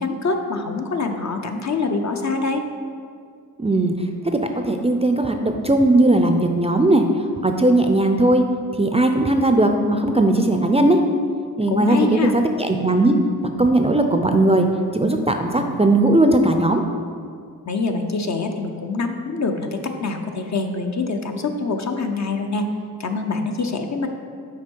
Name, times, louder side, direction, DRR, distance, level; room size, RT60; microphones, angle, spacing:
voice 1, 0.0-2.6 11.7-12.3 17.7-22.7 23.0-24.1, left 3 dB, 45° left, 4 dB, 0.7 m, -25 dB
voice 2, 3.6-7.0 7.4-8.4 8.8-11.0 11.6-13.1 13.6-14.7 14.9-16.8, right 2 dB, 15° right, 5 dB, 0.5 m, -18 dB
5.8 x 4.5 x 4.6 m, 2.2 s
cardioid pair, 50°, 37 cm